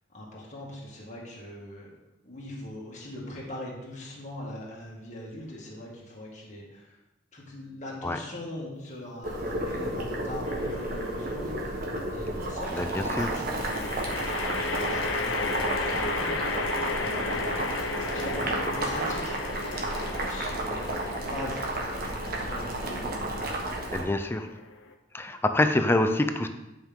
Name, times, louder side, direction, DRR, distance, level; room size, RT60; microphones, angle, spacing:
voice 1, 0.1-1.9 2.2-7.0 7.3-11.8 12.1-21.7 22.0-23.5, left 1 dB, 40° left, -4 dB, 2.1 m, -41 dB
Boiling, 9.2-24.0, right 1 dB, 50° right, 1.3 m, -32 dB
sound 1, 10.4-11.0 13.6-24.9, left 3 dB, 80° left, 0.8 m, -34 dB
voice 2, 12.7-13.3 23.9-24.5 25.1-26.5, left 1 dB, 10° left, 8 dB, 0.4 m, -26 dB
9.9 x 5.6 x 3.7 m, 0.96 s
head